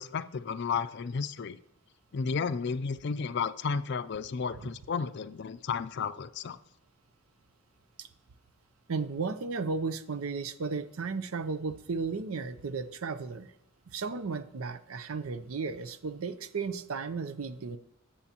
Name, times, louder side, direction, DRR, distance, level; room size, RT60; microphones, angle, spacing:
voice 1, 0.0-1.6 2.1-6.6, left 5 dB, 50° left, 13 dB, 0.4 m, -33 dB
voice 2, 8.9-13.5 13.9-17.8, right 4 dB, 75° right, 13 dB, 0.6 m, -34 dB
19.0 x 7.0 x 2.9 m, 0.86 s
head